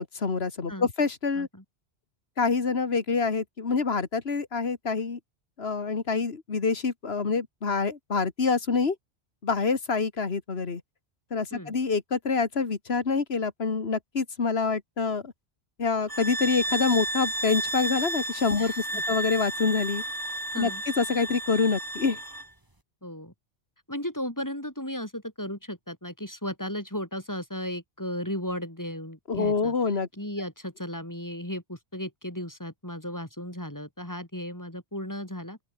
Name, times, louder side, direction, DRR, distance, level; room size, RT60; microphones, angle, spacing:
voice 1, 0.0-1.5 2.4-5.2 5.6-9.0 9.4-10.8 11.3-15.3 15.8-20.0 20.6-20.7 21.0-22.2 29.3-30.1, left 4 dB, 65° left, 2.1 m, -26 dB
sound 1, 16.1-22.5, right 1 dB, 20° right, 2.6 m, -32 dB
voice 2, 18.6-19.0 20.5-20.8 23.0-23.3 23.9-29.7 30.2-35.6, left 1 dB, 15° left, 3.3 m, -35 dB
open air
omnidirectional pair, 1.1 m